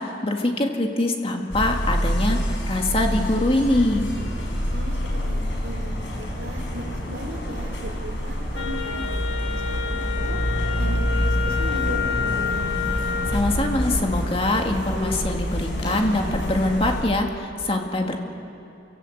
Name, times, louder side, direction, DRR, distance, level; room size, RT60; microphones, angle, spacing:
voice 1, 0.0-4.1 13.3-18.2, left 1 dB, 30° left, 2 dB, 2.1 m, -23 dB
sound 1, 1.5-17.0, equal, 70° left, 5.6 m, -27 dB
voice 2, 4.7-9.0 9.3-9.4 9.6-10.4 10.8-12.7, right 1 dB, 80° right, 2 dB, 3.7 m, -37 dB
Wind instrument woodwind instrument, 8.5-13.4, left 8 dB, 90° left, 1.9 m, -29 dB
sound 2, 10.8-17.0, right 1 dB, 40° right, 1.8 m, -42 dB
29.0 x 17.0 x 8.0 m, 2.8 s
head